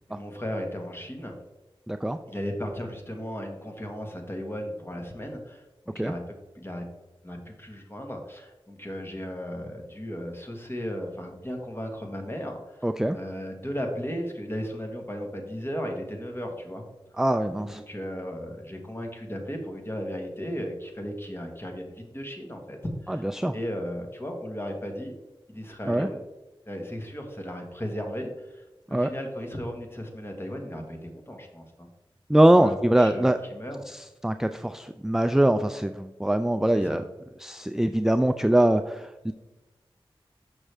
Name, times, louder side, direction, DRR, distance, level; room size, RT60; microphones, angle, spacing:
voice 1, 0.1-1.4 2.3-6.9 7.2-16.8 17.6-25.1 25.5-26.2 26.7-31.9 32.6-33.8 36.7-37.0, equal, 25° left, 2 dB, 1.4 m, -36 dB
voice 2, 1.9-2.2 6.0-6.1 12.8-13.2 17.2-17.8 23.4-23.5 25.9-26.1 28.9-29.1 32.3-33.4 34.2-37.0 37.4-39.3, right 1 dB, 5° right, 9 dB, 0.3 m, -22 dB
6.4 x 6.0 x 3.3 m, 1.1 s
cardioid pair, 40°, 10 cm